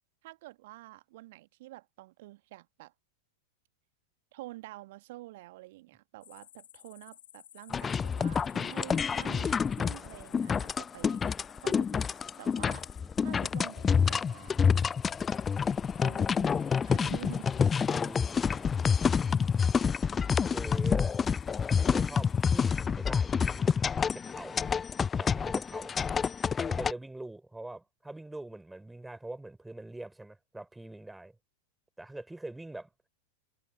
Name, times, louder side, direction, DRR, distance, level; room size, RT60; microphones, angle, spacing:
voice 1, 0.2-2.9 4.3-11.2 11.6-12.0 12.4-12.8 13.2-14.6 16.0-17.6, right 18 dB, 50° right, 1.5 m, -48 dB
sound 1, 6.2-22.7, left 12 dB, 60° left, 2.6 m, -56 dB
sound 2, 7.7-26.9, left 6 dB, 20° left, 0.4 m, -28 dB
voice 2, 17.9-18.8 19.6-19.9 20.5-21.2 21.8-23.8 24.1-24.6 25.2-26.0 26.7-31.4 32.0-32.9, right 2 dB, 5° right, 5.0 m, -43 dB
figure-of-eight pair, 90°, 0 cm